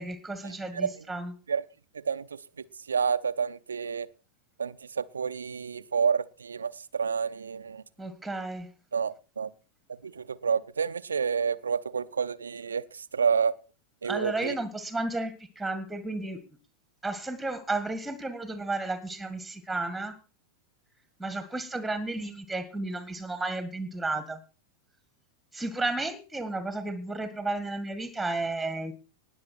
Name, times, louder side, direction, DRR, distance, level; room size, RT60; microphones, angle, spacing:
voice 1, 0.0-1.3 8.0-8.7 14.0-16.4 17.0-20.2 21.2-24.4 25.5-28.9, right 2 dB, 5° right, 1.8 m, -33 dB
voice 2, 2.9-4.1 4.6-7.8 8.9-9.5 10.2-12.8 13.1-13.5 14.0-14.5, right 6 dB, 70° right, 0.7 m, -29 dB
19.5 x 7.0 x 4.4 m
figure-of-eight pair, 90°, 0 cm